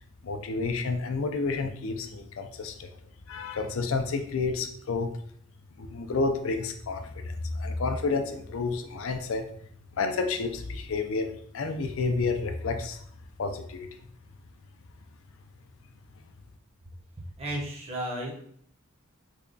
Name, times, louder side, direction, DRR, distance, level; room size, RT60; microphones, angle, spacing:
voice 1, 0.2-2.9 3.3-5.1 5.8-9.4 10.0-13.0 13.4-13.9, left 3 dB, 75° left, 6 dB, 0.5 m, -30 dB
voice 2, 17.4-18.3, right 1 dB, 30° right, -3 dB, 0.8 m, -33 dB
3.4 x 2.3 x 3.7 m, 0.63 s
head